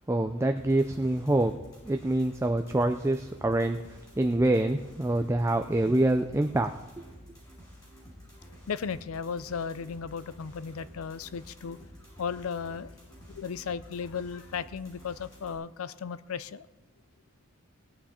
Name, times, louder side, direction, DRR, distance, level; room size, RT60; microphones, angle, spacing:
voice 1, 0.1-1.6 1.9-3.8 4.2-6.7, right 1 dB, 15° right, 6 dB, 0.4 m, -25 dB
sound 1, 0.6-15.6, equal, 20° left, 5.9 m, -51 dB
voice 2, 8.7-11.8 12.2-12.9 13.3-16.7, left 6 dB, 85° left, 16 dB, 0.5 m, -35 dB
19.0 x 9.6 x 4.3 m, 1.2 s
head